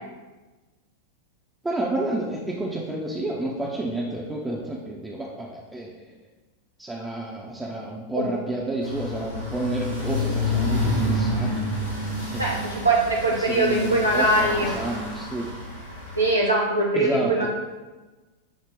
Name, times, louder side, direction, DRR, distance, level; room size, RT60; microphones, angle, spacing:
voice 1, 1.6-5.9 6.8-11.6 12.3-12.6 13.4-15.5 16.9-17.5, right 2 dB, 10° right, -3 dB, 0.5 m, -30 dB
sound 1, 8.8-16.3, left 1 dB, 90° left, 1.2 m, -28 dB
voice 2, 12.4-14.7 16.2-17.5, right 2 dB, 85° right, -3 dB, 0.5 m, -22 dB
6.0 x 2.1 x 3.5 m, 1.2 s
figure-of-eight pair, 90°, 0 cm